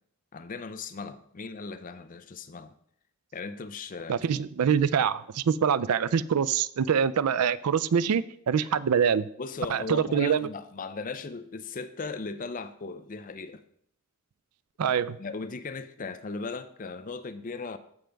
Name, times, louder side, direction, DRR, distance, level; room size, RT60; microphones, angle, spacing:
voice 1, 0.3-2.7 3.3-4.2 9.4-13.6 15.2-17.8, left 4 dB, 35° left, 0.5 m, -37 dB
voice 2, 4.1-9.3 9.7-10.5 14.8-15.2, right 7 dB, 85° right, 0.4 m, -25 dB
15.0 x 5.1 x 3.4 m
head